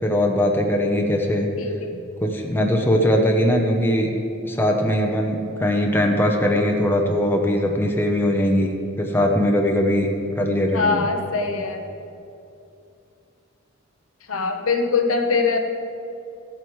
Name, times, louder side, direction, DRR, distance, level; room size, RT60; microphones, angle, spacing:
voice 1, 0.0-1.5 2.2-4.1 4.4-10.1 10.4-11.0, equal, 10° left, 1 dB, 0.7 m, -20 dB
voice 2, 1.6-2.0 10.7-11.8 14.3-15.6, left 4 dB, 80° left, 4 dB, 1.0 m, -22 dB
15.0 x 7.8 x 3.1 m, 2.6 s
head